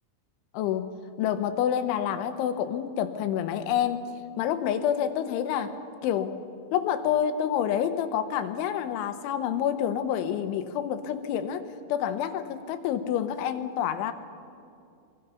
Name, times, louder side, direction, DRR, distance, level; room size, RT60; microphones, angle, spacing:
voice 1, 0.5-4.0 4.4-5.7 6.0-6.4 6.7-14.1, left 9 dB, 90° left, 9 dB, 3.5 m, -28 dB
23.5 x 23.0 x 5.7 m, 2.5 s
omnidirectional pair, 5.3 m